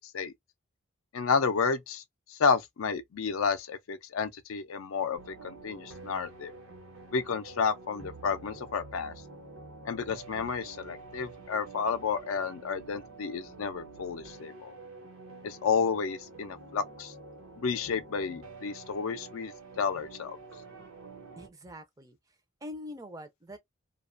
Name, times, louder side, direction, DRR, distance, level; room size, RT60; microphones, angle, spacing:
voice 1, 1.1-2.0 2.3-6.5 7.1-9.1 9.9-14.7 15.4-17.1 17.6-20.4, left 5 dB, 75° left, 0.4 m, -31 dB
sound 1, 5.2-21.5, right 3 dB, 85° right, 0.9 m, -48 dB
voice 2, 21.4-22.2 22.6-23.6, left 1 dB, 15° right, 0.4 m, -43 dB
2.4 x 2.2 x 2.4 m
head